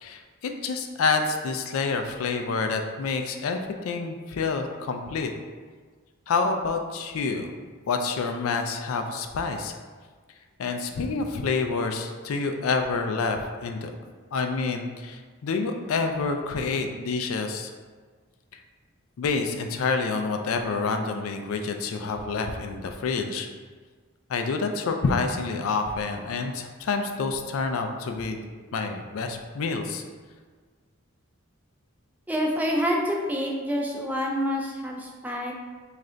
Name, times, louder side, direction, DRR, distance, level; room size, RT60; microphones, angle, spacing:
voice 1, 0.0-3.6 3.8-5.3 6.3-7.5 7.9-9.7 10.6-13.9 14.3-17.7 18.5-18.6 19.2-23.5 24.3-28.4 28.7-30.0 34.9-35.1, left 4 dB, 75° left, 5 dB, 0.4 m, -28 dB
voice 2, 32.3-35.5, equal, 5° right, -1 dB, 0.3 m, -27 dB
3.2 x 2.4 x 3.8 m, 1.5 s
head